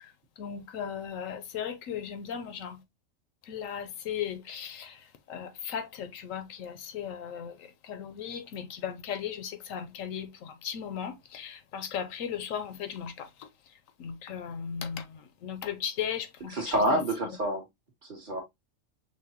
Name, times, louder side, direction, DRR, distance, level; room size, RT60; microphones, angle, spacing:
voice 1, 0.4-2.8 3.5-5.0 5.3-7.5 7.9-13.3 14.0-16.6 16.9-17.0, left 8 dB, 85° left, 1.1 m, -36 dB
voice 2, 16.5-17.6 18.1-18.4, right 1 dB, 40° right, 1.4 m, -27 dB
5.7 x 2.3 x 2.8 m
omnidirectional pair, 1.3 m